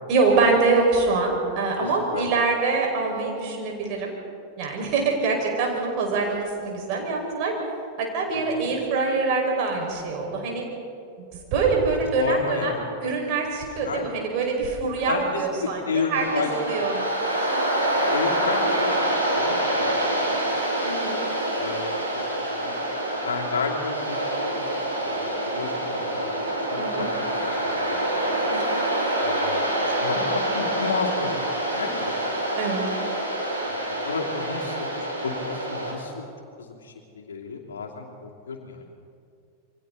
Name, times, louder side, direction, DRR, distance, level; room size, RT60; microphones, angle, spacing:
voice 1, 0.1-4.1 4.6-7.5 8.0-10.6 11.2-12.7 13.0-17.1 17.4-17.6 20.8-21.2 26.8-27.1 28.5-28.7 32.6-32.9, right 4 dB, 45° right, 0 dB, 5.4 m, -24 dB
voice 2, 1.8-2.3 8.3-8.7 12.2-12.9 13.6-14.0 15.0-16.9 17.9-19.0 19.3-20.0 20.2-20.4 21.6-22.2 22.6-22.8 23.2-24.7 25.0-28.2 29.2-32.3 33.7-36.3 36.6-38.8, left 4 dB, 65° left, 0 dB, 2.8 m, -32 dB
Waves surf, 16.1-35.9, right 1 dB, 90° right, 5.1 m, -26 dB
28.0 x 24.0 x 4.1 m, 2.5 s
figure-of-eight pair, 90°, 0 cm